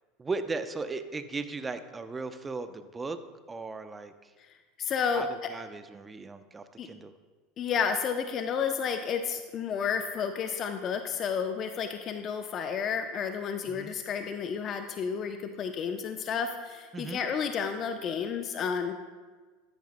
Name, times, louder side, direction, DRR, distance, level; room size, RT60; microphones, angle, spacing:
voice 1, 0.2-3.2 3.5-4.3 5.1-7.1 13.7-13.9 16.9-17.2, right 3 dB, 20° right, 10 dB, 0.7 m, -37 dB
voice 2, 4.8-5.2 6.8-6.9 7.6-18.9, left 6 dB, 40° left, 7 dB, 0.7 m, -31 dB
14.0 x 10.5 x 2.2 m, 1.4 s
hypercardioid pair, 85°, 0 cm